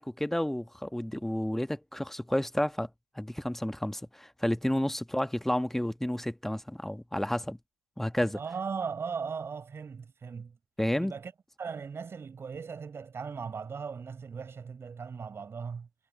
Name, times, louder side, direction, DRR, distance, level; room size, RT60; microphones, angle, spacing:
voice 1, 0.0-2.9 3.1-7.6 8.0-8.4 10.8-11.1, left 1 dB, 5° left, 1.4 m, -31 dB
voice 2, 8.3-10.6 11.0-11.3 11.6-15.9, right 5 dB, 30° right, 4.7 m, -38 dB
hypercardioid pair, 65°, 8 cm